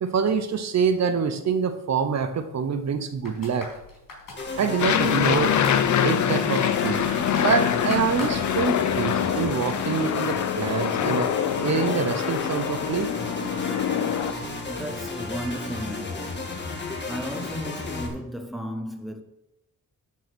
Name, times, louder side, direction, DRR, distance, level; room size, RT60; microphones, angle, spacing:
voice 1, 0.0-3.7 4.6-5.6 6.0-11.3 11.6-13.1, right 6 dB, 55° right, 0.9 m, -26 dB
sound 1, 3.2-9.1 9.3-9.4, left 3 dB, 80° left, 4.4 m, -40 dB
sound 2, 4.4-18.1, left 3 dB, 35° left, 1.7 m, -33 dB
Aircraft, 4.8-14.3, left 9 dB, 60° left, 0.6 m, -25 dB
voice 2, 14.7-16.6 17.1-19.2, equal, ahead, 1.0 m, -34 dB
12.5 x 4.7 x 6.2 m
wide cardioid pair, 145°, 33 cm